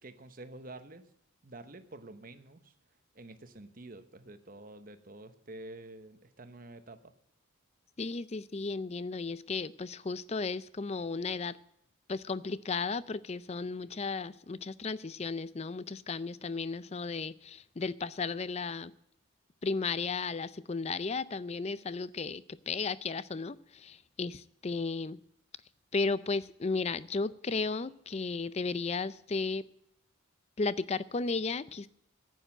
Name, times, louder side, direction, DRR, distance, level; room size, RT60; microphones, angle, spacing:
voice 1, 0.0-1.1 1.4-2.7 3.1-7.1, right 2 dB, 40° right, 10 dB, 1.0 m, -48 dB
voice 2, 8.0-11.6 12.1-18.9 19.6-25.2 25.9-29.7 30.6-31.9, left 4 dB, 30° left, 17 dB, 0.4 m, -34 dB
10.5 x 9.2 x 8.7 m, 0.78 s
head